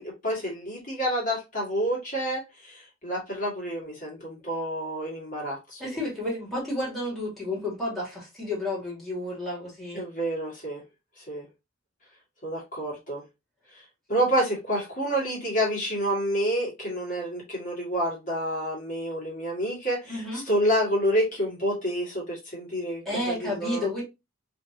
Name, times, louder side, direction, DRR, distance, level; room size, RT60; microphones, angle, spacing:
voice 1, 0.0-5.8 9.9-10.8 11.2-11.5 12.4-13.2 13.7-13.8 14.1-23.9, equal, 40° left, 1.9 m, -28 dB
voice 2, 5.8-10.1 20.1-20.4 23.1-24.0, left 1 dB, ahead, 2.0 m, -31 dB
5.0 x 2.8 x 2.8 m
head